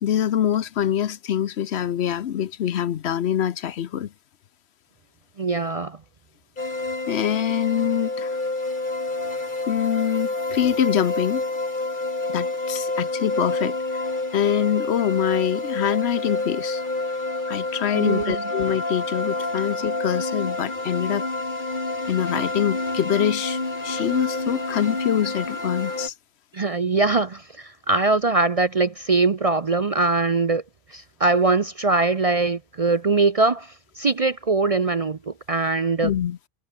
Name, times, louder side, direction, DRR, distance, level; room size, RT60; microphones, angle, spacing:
voice 1, 0.0-4.1 7.1-8.4 9.7-11.4 12.3-14.0 14.3-16.8 17.5-21.3 22.1-26.1 36.0-36.4, left 10 dB, 65° left, 0.9 m, -24 dB
voice 2, 5.4-6.0 17.9-18.4 26.5-30.6 30.9-36.1, right 3 dB, 40° right, 0.6 m, -22 dB
sound 1, 6.6-26.1, left 2 dB, 40° left, 3.2 m, -28 dB
omnidirectional pair, 1.2 m